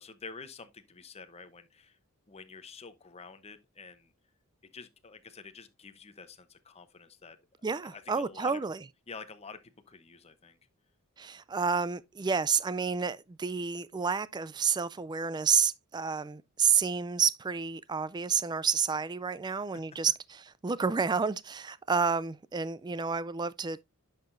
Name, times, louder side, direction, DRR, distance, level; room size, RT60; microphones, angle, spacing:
voice 1, 0.0-2.0 2.3-4.1 4.7-7.4 7.8-8.6 9.1-10.6 19.4-19.8, left 4 dB, 30° left, 0.7 m, -48 dB
voice 2, 7.6-8.8 11.2-20.4 20.6-23.8, right 6 dB, 20° right, 0.3 m, -30 dB
10.5 x 5.7 x 2.5 m
head